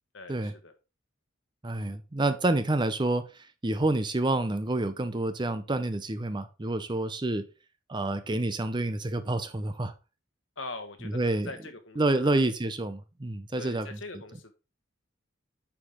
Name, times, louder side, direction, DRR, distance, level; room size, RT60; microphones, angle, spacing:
voice 1, 0.1-0.7 10.6-12.5 13.6-14.5, left 2 dB, 70° left, 1.4 m, -42 dB
voice 2, 1.6-3.2 3.6-7.4 7.9-9.9 11.1-11.5 12.0-14.0, right 2 dB, 20° right, 0.6 m, -28 dB
8.6 x 5.0 x 3.7 m
head